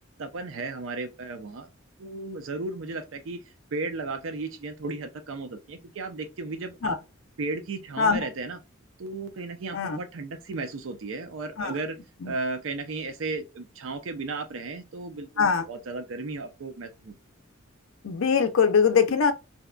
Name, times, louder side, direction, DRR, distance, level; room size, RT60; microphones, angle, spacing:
voice 1, 0.2-1.7 2.0-3.4 3.7-7.0 7.4-8.6 9.0-12.0 12.2-17.1, right 3 dB, 65° right, 0.5 m, -34 dB
voice 2, 18.0-19.3, left 6 dB, 70° left, 0.5 m, -22 dB
2.7 x 2.1 x 2.3 m
head